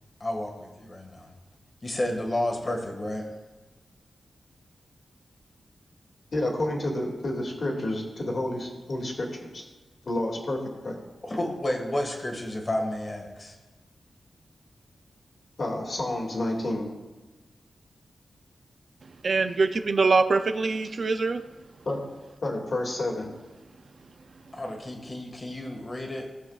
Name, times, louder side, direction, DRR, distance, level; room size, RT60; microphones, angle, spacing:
voice 1, 0.2-1.3 1.8-3.3 11.2-13.6 24.5-26.3, left 1 dB, 25° left, 2 dB, 1.7 m, -31 dB
voice 2, 6.3-9.3 9.5-9.6 10.1-11.0 15.6-16.9 21.9-22.0 22.4-23.3, left 1 dB, 45° left, -1 dB, 2.1 m, -29 dB
voice 3, 19.2-21.4, right 4 dB, 50° right, 8 dB, 0.5 m, -23 dB
18.0 x 7.2 x 2.4 m, 1.2 s
wide cardioid pair, 150°, 0 cm